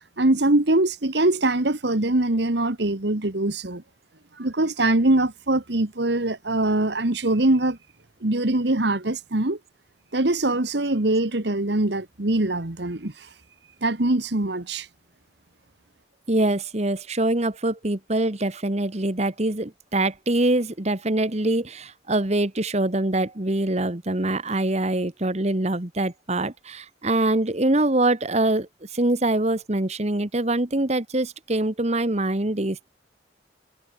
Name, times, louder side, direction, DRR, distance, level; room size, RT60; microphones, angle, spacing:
voice 1, 0.0-3.8 4.4-7.8 8.2-9.6 10.1-13.3 13.8-14.9, right 2 dB, 60° right, 1.6 m, -23 dB
voice 2, 16.3-32.9, right 2 dB, 35° right, 1.5 m, -24 dB
head